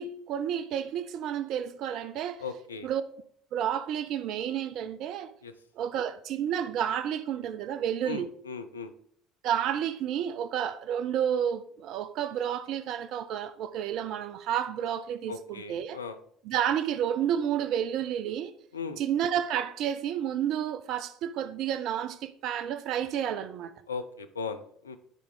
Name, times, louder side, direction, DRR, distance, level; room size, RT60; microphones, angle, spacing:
voice 1, 0.0-2.4 2.8-3.0 3.5-5.3 5.8-8.3 9.4-16.0 16.4-18.5 19.0-23.7, right 9 dB, 60° right, 0.4 m, -30 dB
voice 2, 2.4-2.9 5.4-5.5 8.0-8.9 15.3-16.2 18.7-19.0 23.9-25.0, left 5 dB, 90° left, 0.5 m, -37 dB
10.5 x 4.8 x 3.7 m
hypercardioid pair, 65°, 0 cm